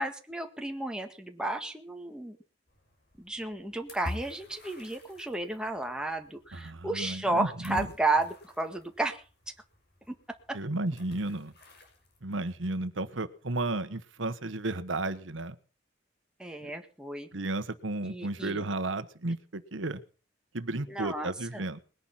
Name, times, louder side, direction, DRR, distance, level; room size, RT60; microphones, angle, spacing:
voice 1, 0.0-2.4 3.2-9.2 10.5-10.6 16.4-17.3 18.0-18.6 20.9-21.7, right 2 dB, 5° right, 4 dB, 1.7 m, -32 dB
sound 1, 2.7-12.2, left 1 dB, 55° left, 5.5 m, -48 dB
voice 2, 6.5-7.9 10.5-11.5 12.2-15.5 16.6-16.7 17.3-20.0 20.5-21.8, right 2 dB, 80° right, 11 dB, 1.2 m, -33 dB
20.5 x 11.0 x 5.8 m, 0.37 s
head